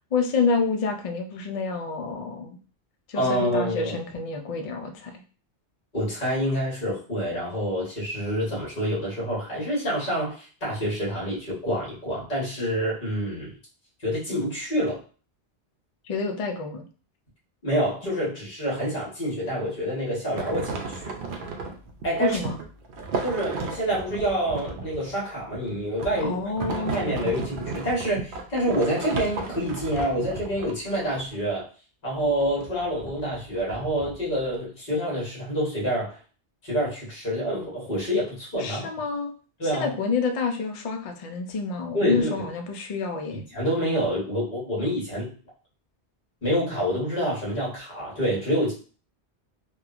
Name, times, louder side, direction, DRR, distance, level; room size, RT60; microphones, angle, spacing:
voice 1, 0.1-2.6 3.1-5.1 16.0-16.9 22.2-22.6 26.2-27.0 38.6-39.3 39.6-43.4, left 4 dB, 70° left, 4 dB, 0.3 m, -28 dB
voice 2, 3.1-3.9 5.9-13.5 14.0-15.0 17.6-21.1 22.0-22.4 23.2-26.5 26.9-31.7 32.0-36.2 36.6-38.9 39.6-39.9 41.9-42.4 43.3-45.3 46.4-48.7, equal, 45° left, -5 dB, 1.3 m, -27 dB
sound 1, 20.3-31.4 32.2-34.6, right 4 dB, 60° right, 0.6 m, -34 dB
2.9 x 2.3 x 2.4 m, 0.38 s
omnidirectional pair, 1.2 m